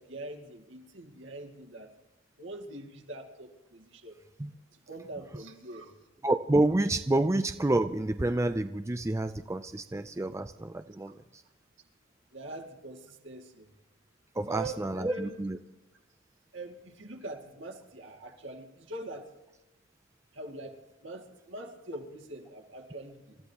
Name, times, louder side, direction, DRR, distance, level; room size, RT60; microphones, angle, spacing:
voice 1, 0.0-1.9 2.4-4.2 4.9-5.9 6.8-6.9 7.2-7.3 12.3-13.7 14.4-15.4 16.5-19.3 20.3-20.7 21.0-23.4, right 2 dB, 70° right, 2 dB, 2.3 m, -43 dB
voice 2, 6.2-11.4 14.4-15.6, right 2 dB, 15° right, 9 dB, 0.4 m, -28 dB
27.5 x 14.0 x 2.9 m, 1.1 s
head